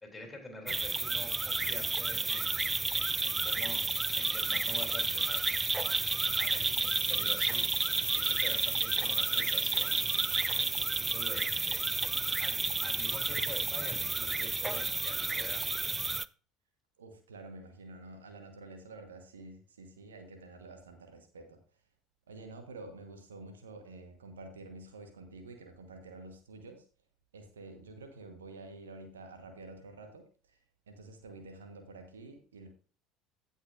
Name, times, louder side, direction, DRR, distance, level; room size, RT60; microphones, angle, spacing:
voice 1, 0.0-2.5 2.9-3.8 4.1-5.5 6.4-7.6 8.1-10.1 10.9-11.8 12.4-15.7, left 1 dB, 15° left, 2 dB, 3.2 m, -47 dB
sound 1, 0.7-16.3, right 3 dB, 15° right, 0.3 m, -31 dB
voice 2, 17.0-21.6 22.3-26.8 27.3-30.6 30.9-32.7, right 2 dB, 75° right, 6 dB, 1.2 m, -49 dB
16.0 x 5.6 x 2.5 m, 0.39 s
figure-of-eight pair, 65°, 0 cm